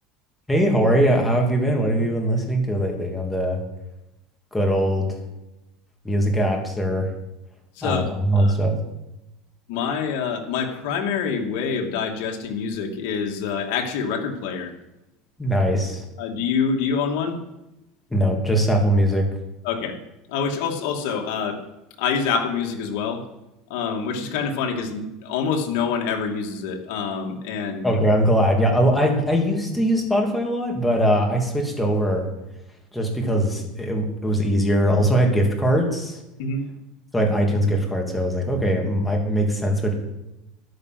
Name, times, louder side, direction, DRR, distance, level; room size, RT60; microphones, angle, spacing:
voice 1, 0.5-3.6 4.5-5.2 6.0-7.1 7.8-8.8 15.4-16.0 18.1-19.3 27.8-32.2 32.9-36.2 37.1-39.9, equal, 5° left, 1 dB, 2.6 m, -21 dB
voice 2, 7.8-8.6 9.7-14.7 16.2-17.4 19.6-20.0 20.3-21.6 22.0-23.2 23.7-27.9 36.4-36.7, left 6 dB, 70° left, 3 dB, 2.4 m, -26 dB
13.0 x 10.5 x 6.1 m, 0.93 s
supercardioid pair, 150°, 0 cm